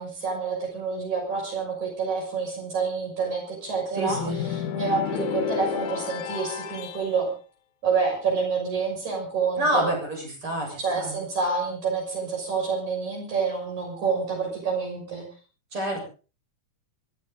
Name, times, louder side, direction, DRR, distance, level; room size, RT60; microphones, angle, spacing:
voice 1, 0.0-7.3 7.8-9.9 10.8-15.3, right 5 dB, 70° right, 0 dB, 7.5 m, -28 dB
voice 2, 3.9-4.4 9.6-11.1 15.7-16.0, right 1 dB, 45° right, 0 dB, 8.3 m, -27 dB
sound 1, 4.1-7.1, left 9 dB, 85° left, 2.7 m, -31 dB
26.0 x 13.5 x 3.9 m, 0.36 s
omnidirectional pair, 3.5 m